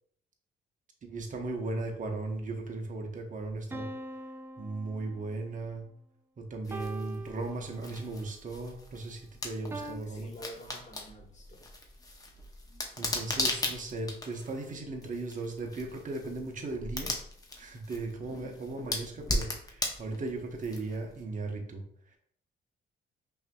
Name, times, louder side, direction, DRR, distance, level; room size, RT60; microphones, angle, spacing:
voice 1, 1.0-3.9 4.6-5.9 6.4-10.3 13.0-17.1 17.6-22.2, right 2 dB, 40° right, 2 dB, 0.9 m, -37 dB
sound 1, 3.7-5.5 6.7-8.1 9.7-10.0, right 1 dB, 10° right, 0.4 m, -42 dB
sound 2, 6.6-21.2, left 2 dB, 20° left, 0.7 m, -38 dB
voice 2, 9.8-11.6, equal, 35° left, 0 dB, 1.4 m, -49 dB
5.6 x 2.7 x 2.3 m, 0.65 s
cardioid pair, 90°, 20 cm